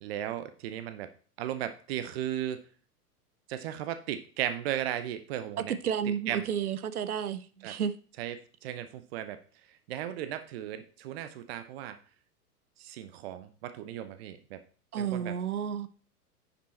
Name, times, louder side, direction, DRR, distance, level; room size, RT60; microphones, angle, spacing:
voice 1, 0.0-1.1 1.4-2.6 3.5-5.7 6.3-6.5 7.6-7.8 8.2-8.4 8.6-9.4 9.9-12.0 12.8-14.6 15.0-15.3, right 11 dB, 40° right, 0.7 m, -36 dB
voice 2, 5.7-7.9 14.9-15.9, right 8 dB, 70° right, 0.9 m, -31 dB
10.0 x 5.3 x 4.1 m
figure-of-eight pair, 105°, 47 cm